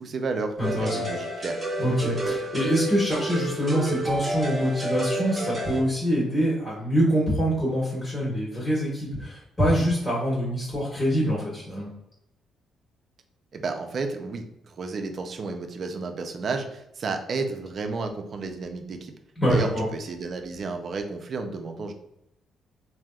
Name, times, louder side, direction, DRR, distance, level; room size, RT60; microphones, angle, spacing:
voice 1, 0.0-1.6 13.5-19.1 19.5-21.9, right 4 dB, 50° right, 6 dB, 0.5 m, -32 dB
voice 2, 0.6-1.0 1.8-11.9 19.4-19.8, equal, 15° left, -7 dB, 1.4 m, -25 dB
sound 1, 0.6-5.8, right 1 dB, 25° right, 1.1 m, -30 dB
3.3 x 2.6 x 2.3 m, 0.84 s
cardioid pair, 90°, 0 cm